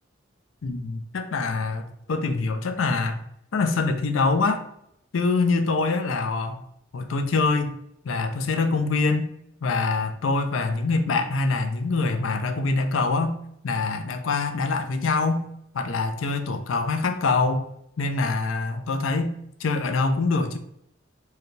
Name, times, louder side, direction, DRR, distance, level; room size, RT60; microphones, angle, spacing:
voice 1, 0.6-3.2 3.5-4.6 5.1-6.6 6.9-7.8 8.0-9.3 9.6-13.4 13.6-15.5 15.7-17.7 18.0-20.6, left 3 dB, 85° left, 7 dB, 0.5 m, -24 dB
4.6 x 2.3 x 3.2 m, 0.74 s
head